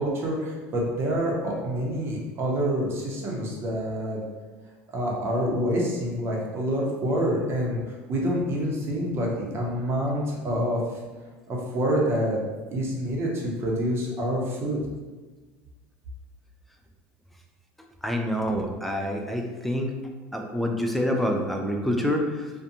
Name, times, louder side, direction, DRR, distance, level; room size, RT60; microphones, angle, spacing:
voice 1, 0.0-4.2 4.9-10.8 11.5-12.4 12.7-14.8, equal, 40° right, -2 dB, 0.7 m, -27 dB
voice 2, 18.0-19.9 20.3-22.5, equal, ahead, 2 dB, 0.3 m, -27 dB
2.7 x 2.2 x 2.5 m, 1.3 s
supercardioid pair, 120°, 7 cm